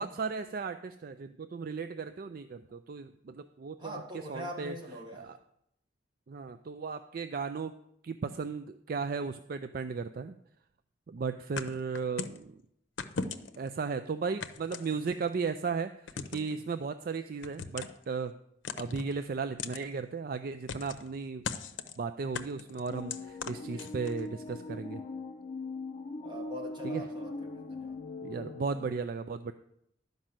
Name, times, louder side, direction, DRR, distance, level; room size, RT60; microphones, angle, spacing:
voice 1, 0.0-4.0 4.3-4.7 5.1-5.4 6.3-7.7 8.0-10.4 11.1-12.6 13.6-18.4 18.8-21.4 22.0-25.0 26.8-27.0 28.2-29.5, right 5 dB, 50° right, 9 dB, 0.4 m, -35 dB
voice 2, 3.8-5.3 23.7-23.9 26.2-28.0, equal, 25° right, 0 dB, 1.8 m, -43 dB
sound 1, 11.6-12.4 13.0-13.7 14.4-15.3 16.1-16.5 17.4-18.0 18.6-19.1 19.6-19.8 20.7-21.1 21.4-22.0 22.3-24.2, left 5 dB, 80° left, 0.7 m, -38 dB
sound 2, 22.9-29.0, left 2 dB, 40° left, 0.7 m, -41 dB
11.5 x 5.3 x 7.5 m, 0.75 s
head